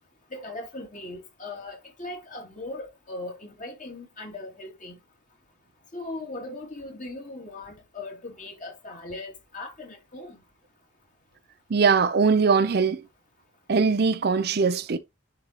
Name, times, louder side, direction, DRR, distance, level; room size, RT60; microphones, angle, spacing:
voice 1, 0.3-5.0 5.9-10.4, left 2 dB, 40° left, 2.9 m, -39 dB
voice 2, 11.7-13.0 13.7-15.0, right 5 dB, 50° right, 0.5 m, -21 dB
10.5 x 4.3 x 3.0 m
head